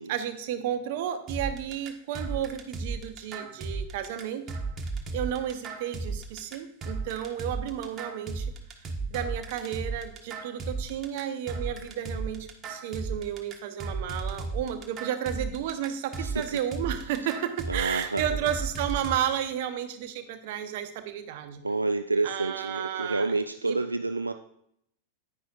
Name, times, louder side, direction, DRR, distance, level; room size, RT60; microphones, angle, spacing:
voice 1, 0.1-4.4 5.1-8.5 9.1-21.6 22.2-23.4 23.6-23.8, right 10 dB, 50° right, 9 dB, 1.0 m, -32 dB
sound 1, 1.3-19.2, right 3 dB, 25° right, 1.2 m, -35 dB
voice 2, 16.2-16.6 17.7-18.2 21.6-24.3, right 3 dB, 80° right, 8 dB, 0.4 m, -29 dB
10.0 x 9.8 x 2.5 m, 0.73 s
figure-of-eight pair, 90°, 0 cm